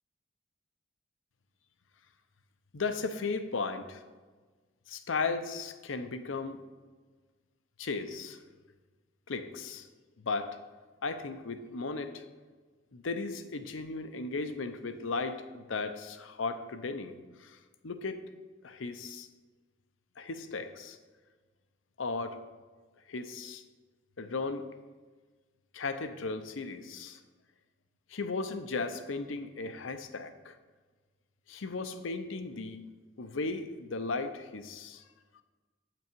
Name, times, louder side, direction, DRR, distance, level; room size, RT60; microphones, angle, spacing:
voice 1, 2.7-4.0 4.9-6.6 7.8-8.4 9.3-9.9 10.2-10.6 11.0-12.2 12.9-17.6 17.8-18.2 18.6-19.3 20.2-21.0 22.0-22.4 23.1-23.6 24.2-24.6 25.7-27.2 28.1-30.6 31.5-32.8 33.2-35.0, left 4 dB, 80° left, 9 dB, 0.7 m, -36 dB
8.4 x 6.0 x 4.5 m, 1.4 s
head